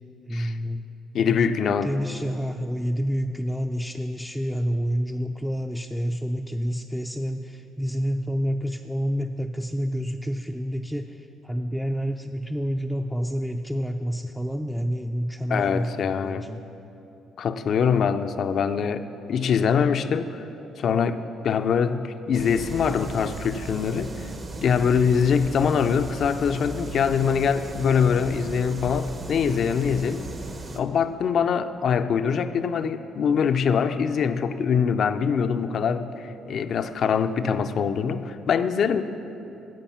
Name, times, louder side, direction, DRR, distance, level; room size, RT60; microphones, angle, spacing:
voice 1, 0.2-0.9 1.8-16.7, equal, ahead, 3 dB, 0.4 m, -28 dB
voice 2, 1.1-1.9 15.5-16.5 17.4-20.4 20.8-24.1 24.6-30.2 30.7-39.0, left 6 dB, 60° left, 10 dB, 0.5 m, -23 dB
sound 1, 22.3-30.8, right 2 dB, 40° right, 1.0 m, -36 dB
15.5 x 5.3 x 5.7 m, 2.9 s
supercardioid pair, 60°, 0 cm